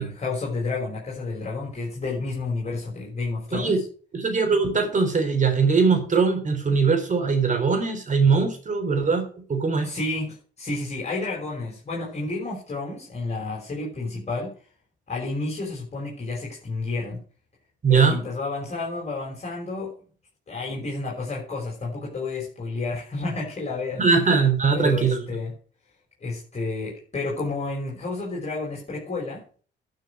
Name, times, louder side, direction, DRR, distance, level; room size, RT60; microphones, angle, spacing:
voice 1, 0.0-3.8 9.8-14.5 15.1-17.2 17.9-19.9 20.5-24.0 24.7-25.5 26.2-29.4, left 3 dB, 35° left, 5.6 m, -30 dB
voice 2, 3.5-3.8 4.1-9.9 17.8-18.2 24.0-25.2, right 5 dB, 40° right, 3.7 m, -21 dB
12.0 x 6.7 x 6.6 m
cardioid pair, 90°, 20 cm